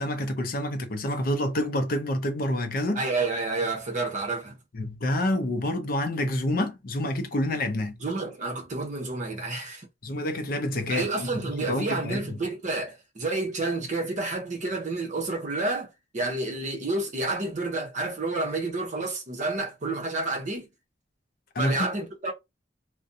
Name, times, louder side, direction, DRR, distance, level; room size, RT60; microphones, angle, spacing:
voice 1, 0.0-3.0 4.7-8.0 10.0-12.4 21.5-21.9, left 1 dB, 50° left, 0.5 m, -28 dB
voice 2, 3.0-4.6 8.0-9.9 10.9-20.7 21.6-22.3, right 2 dB, 40° right, 0.8 m, -30 dB
2.5 x 2.1 x 2.6 m
head